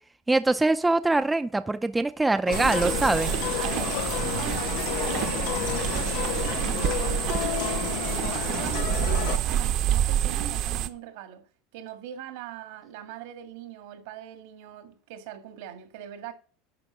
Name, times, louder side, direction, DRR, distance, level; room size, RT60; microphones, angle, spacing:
voice 1, 0.3-3.3, right 2 dB, 10° right, 0.5 m, -23 dB
sound 1, 2.5-9.4, left 14 dB, 65° left, 0.6 m, -31 dB
sound 2, 2.5-10.9, right 11 dB, 50° right, 0.8 m, -28 dB
voice 2, 3.5-3.9 4.2-7.3 7.5-11.4 11.7-16.3, right 10 dB, 75° right, 1.8 m, -41 dB
10.5 x 4.7 x 6.1 m
supercardioid pair, 130°, 0 cm